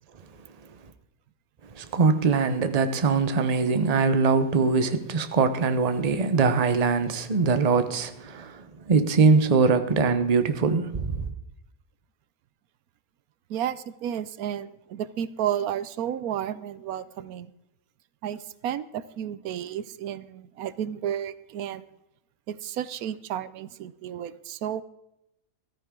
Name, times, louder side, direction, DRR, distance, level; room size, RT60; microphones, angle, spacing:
voice 1, 1.7-11.3, right 4 dB, 30° right, 0.8 m, -22 dB
voice 2, 13.5-17.5 18.2-21.9 22.5-24.8, right 10 dB, 90° right, 1.2 m, -32 dB
14.0 x 14.0 x 3.7 m
omnidirectional pair, 1.5 m